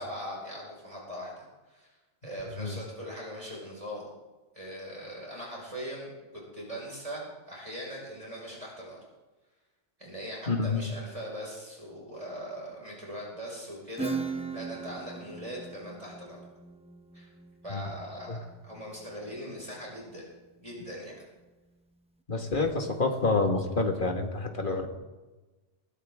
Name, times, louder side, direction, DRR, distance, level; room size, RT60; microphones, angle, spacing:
voice 1, 0.0-2.0 2.2-4.1 4.5-9.0 10.0-16.4 17.1-17.3 17.6-18.4 18.6-20.3 20.6-21.1, equal, 25° right, -3 dB, 5.4 m, -40 dB
voice 2, 10.5-10.9 17.7-17.8 18.3-18.4 22.3-24.9, left 3 dB, 45° left, 3 dB, 2.1 m, -28 dB
Acoustic guitar / Strum, 14.0-19.3, right 4 dB, 5° right, 0.8 m, -39 dB
21.5 x 16.0 x 3.7 m, 1.2 s
omnidirectional pair, 1.2 m